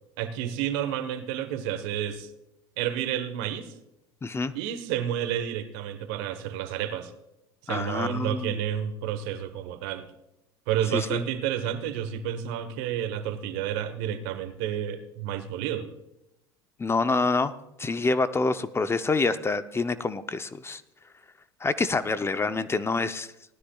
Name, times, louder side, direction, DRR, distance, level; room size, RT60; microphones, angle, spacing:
voice 1, 0.2-2.3 2.8-3.7 4.5-7.1 7.6-10.1 10.7-15.9, right 10 dB, 70° right, 11 dB, 1.2 m, -30 dB
voice 2, 4.2-4.5 7.7-8.6 10.9-11.2 16.8-17.5 17.8-20.8 21.6-23.3, left 3 dB, 20° left, 12 dB, 0.6 m, -27 dB
18.5 x 12.5 x 2.4 m, 0.87 s
hypercardioid pair, 85°, 13 cm